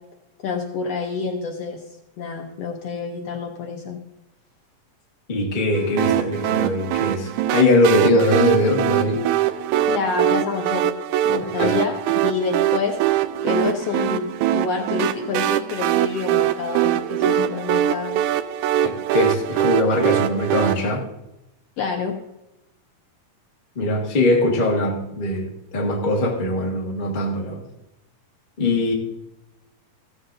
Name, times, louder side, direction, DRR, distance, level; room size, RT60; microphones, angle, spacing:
voice 1, 0.4-1.8 2.2-4.0 9.9-10.9 11.2-13.0 13.4-18.2 21.8-22.2, left 5 dB, 70° left, 1.6 m, -27 dB
voice 2, 5.3-9.2 11.6-11.7 18.8-21.1 23.7-27.6 28.6-28.9, left 1 dB, 35° left, 0.7 m, -21 dB
sound 1, 6.0-20.7, right 12 dB, 80° right, 1.9 m, -22 dB
15.0 x 13.0 x 2.6 m
omnidirectional pair, 3.6 m